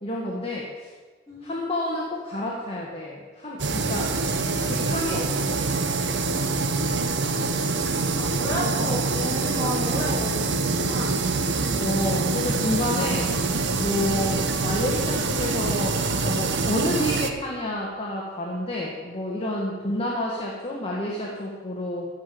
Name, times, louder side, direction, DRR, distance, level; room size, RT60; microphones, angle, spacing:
voice 1, 0.0-0.9 1.4-4.1 4.6-5.6 8.5-8.9 11.8-13.5 13.8-22.1, left 1 dB, 35° left, -3 dB, 1.6 m, -29 dB
voice 2, 1.3-1.6 6.1-7.3 8.2-11.1, equal, 20° left, -7 dB, 4.4 m, -33 dB
sound 1, 3.6-17.3, right 3 dB, 85° right, 0.9 m, -25 dB
14.5 x 5.5 x 7.7 m, 1.4 s
head